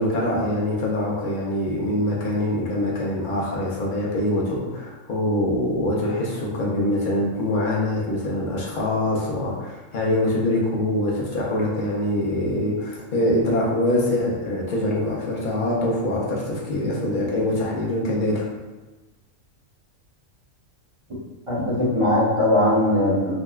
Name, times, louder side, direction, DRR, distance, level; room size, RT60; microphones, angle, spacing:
voice 1, 0.0-18.4, left 1 dB, 50° left, -4 dB, 0.6 m, -24 dB
voice 2, 21.5-23.3, left 1 dB, 25° right, -9 dB, 0.9 m, -20 dB
3.7 x 2.3 x 2.3 m, 1.2 s
omnidirectional pair, 1.4 m